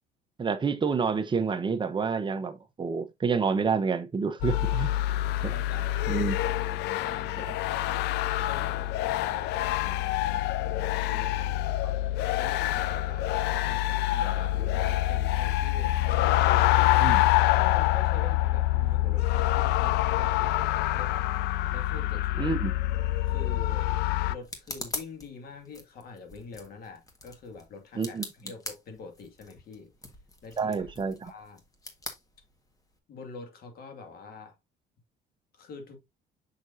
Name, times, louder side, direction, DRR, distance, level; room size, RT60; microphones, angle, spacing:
voice 1, 0.4-4.9 5.4-5.5 6.1-6.4 17.0-17.2 22.4-22.7 28.0-28.3 30.6-31.3, right 5 dB, 30° right, 1.0 m, -28 dB
sound 1, 4.4-24.4, left 15 dB, 80° left, 0.4 m, -26 dB
voice 2, 5.2-6.1 6.5-8.1 8.5-12.0 12.4-17.0 17.5-21.3 21.7-22.6 23.2-23.9 24.3-29.9 30.4-30.9 31.2-31.6 33.1-34.6 35.5-36.0, left 4 dB, 65° left, 2.3 m, -45 dB
sound 2, 23.1-33.0, left 2 dB, 20° left, 1.7 m, -44 dB
6.3 x 6.1 x 2.7 m
cardioid pair, 110°, 17 cm